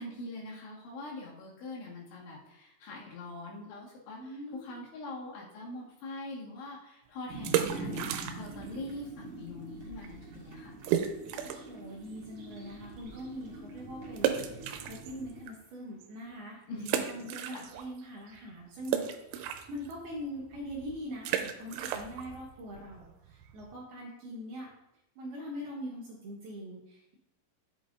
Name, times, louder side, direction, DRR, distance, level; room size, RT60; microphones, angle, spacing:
voice 1, 0.0-10.8 16.7-17.7, left 2 dB, 70° left, -4 dB, 4.0 m, -43 dB
voice 2, 4.2-4.9 11.4-16.6 16.9-19.2 19.7-24.7 25.2-27.2, equal, 65° right, -4 dB, 2.7 m, -42 dB
sound 1, 7.3-15.4, right 2 dB, 50° right, 3.0 m, -44 dB
sound 2, 7.3-8.7 8.9-9.0 9.6-9.8 10.0-10.1 10.8-11.8 12.2-12.3 14.2-15.5 16.0-16.1 16.8-18.0 18.3-23.8, right 10 dB, 85° right, 3.1 m, -34 dB
11.0 x 8.0 x 2.6 m, 0.87 s
omnidirectional pair, 5.8 m